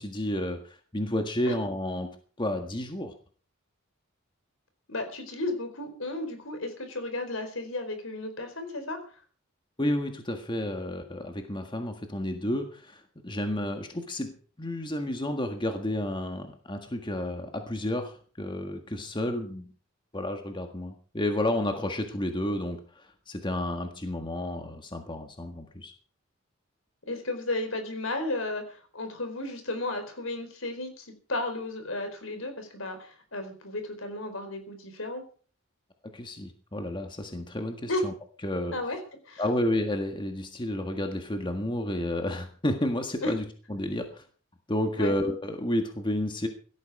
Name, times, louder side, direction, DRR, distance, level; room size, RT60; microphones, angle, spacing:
voice 1, 0.0-3.1 9.8-19.7 20.1-25.9 36.1-38.1 38.4-38.7 39.4-43.4 43.7-44.2 44.7-46.5, left 1 dB, 25° left, 5 dB, 1.6 m, -31 dB
voice 2, 4.9-9.0 27.1-35.2 37.9-38.0 38.7-39.0 39.3-39.4 43.2-43.3 44.9-45.1, left 2 dB, 75° left, 8 dB, 4.3 m, -33 dB
17.0 x 13.5 x 4.9 m, 0.42 s
head